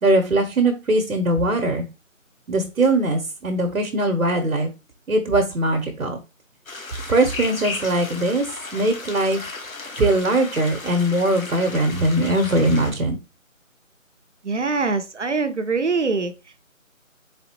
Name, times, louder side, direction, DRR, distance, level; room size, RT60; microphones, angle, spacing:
voice 1, 0.0-1.8 2.5-4.7 5.1-6.2 7.1-8.5 8.7-9.4 10.0-13.2, right 2 dB, 85° right, 4 dB, 1.1 m, -21 dB
sound 1, 6.7-12.9, left 3 dB, 80° left, 1.3 m, -35 dB
voice 2, 14.4-16.3, right 4 dB, 60° right, 9 dB, 0.7 m, -23 dB
4.1 x 3.5 x 2.9 m, 0.29 s
figure-of-eight pair, 180°, 40 cm